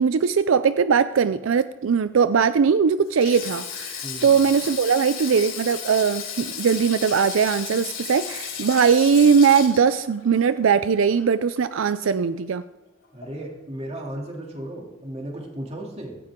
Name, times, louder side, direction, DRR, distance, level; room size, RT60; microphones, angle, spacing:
voice 1, 0.0-12.6, right 6 dB, 80° right, 13 dB, 0.4 m, -20 dB
Sink (filling or washing), 3.1-11.5 11.8-12.0 13.2-13.5, left 8 dB, 70° left, 5.1 m, -34 dB
voice 2, 4.0-4.4 13.1-16.2, right 1 dB, 30° right, 0 dB, 2.9 m, -35 dB
17.0 x 14.5 x 3.7 m, 1.1 s
head